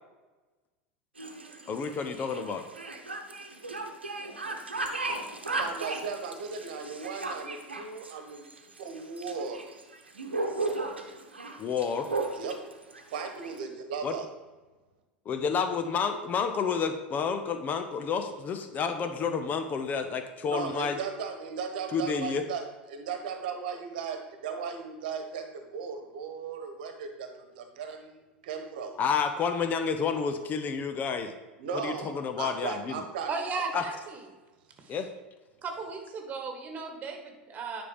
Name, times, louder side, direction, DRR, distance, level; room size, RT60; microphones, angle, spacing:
sound 1, 1.2-13.6, right 2 dB, 80° right, 1.0 m, -35 dB
voice 1, 1.7-2.6 11.6-12.1 14.0-14.1 15.3-21.0 21.9-22.5 29.0-31.3 31.8-33.0 33.7-33.8 34.9-35.1, left 6 dB, 30° left, 7 dB, 0.8 m, -30 dB
voice 2, 5.6-8.5 8.8-9.6 12.3-12.5 13.1-14.3 20.4-22.6 22.9-28.9 31.6-32.1 32.4-33.6, right 6 dB, 55° right, 6 dB, 1.3 m, -37 dB
voice 3, 33.3-34.2 34.8-35.0 35.6-37.8, right 4 dB, 25° right, 4 dB, 1.8 m, -36 dB
10.0 x 5.4 x 5.1 m, 1.2 s
figure-of-eight pair, 85°, 6 cm